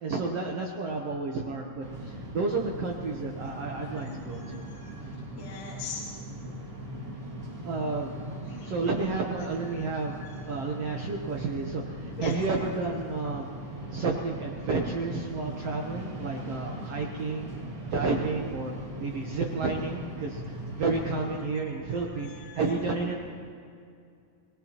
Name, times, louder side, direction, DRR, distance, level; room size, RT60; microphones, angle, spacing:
voice 1, 0.0-4.6 6.3-6.6 7.6-8.1 8.6-10.2 10.5-13.5 13.9-17.5 17.9-18.7 19.0-23.2, right 3 dB, 70° right, 0 dB, 1.5 m, -31 dB
sound 1, 1.8-21.4, right 1 dB, 30° right, 1.8 m, -40 dB
voice 2, 4.4-4.8 5.4-6.0 8.6-8.7 9.9-10.0 12.2-12.3 22.7-22.8, left 4 dB, 50° left, -4 dB, 2.9 m, -40 dB
25.5 x 19.0 x 3.0 m, 2.3 s
omnidirectional pair, 4.1 m